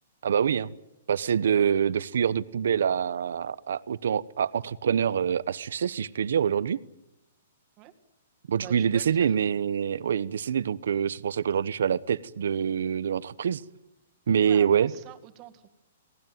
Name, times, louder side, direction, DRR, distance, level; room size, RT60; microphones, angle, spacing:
voice 1, 0.2-0.7 1.1-6.8 8.5-13.6 14.3-14.9, right 8 dB, 75° right, 17 dB, 0.9 m, -25 dB
voice 2, 8.6-9.4 14.4-15.7, right 14 dB, 25° right, 6 dB, 2.0 m, -45 dB
28.5 x 19.0 x 9.4 m, 0.90 s
hypercardioid pair, 175°, 0 cm